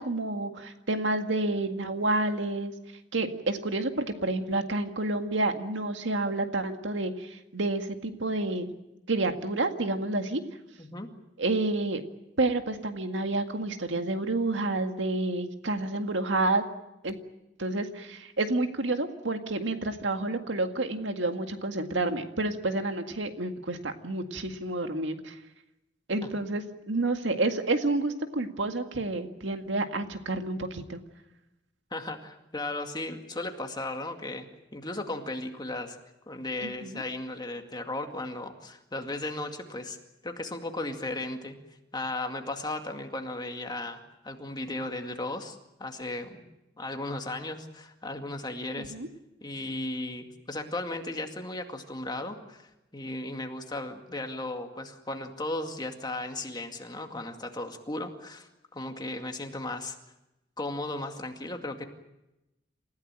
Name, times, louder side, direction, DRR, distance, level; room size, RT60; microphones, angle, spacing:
voice 1, 0.0-2.7 3.1-8.7 9.1-10.4 11.4-12.0 12.4-16.7 17.0-17.2 17.6-25.4 26.1-31.0 36.6-37.0 48.8-49.1, right 2 dB, 80° right, 6 dB, 2.0 m, -29 dB
voice 2, 10.8-11.1 26.2-26.3 31.9-36.0 36.3-40.0 40.2-41.6 41.9-46.5 46.8-48.9 49.4-60.0 60.6-61.8, left 2 dB, 25° left, 4 dB, 2.2 m, -36 dB
28.0 x 15.5 x 8.8 m, 0.94 s
head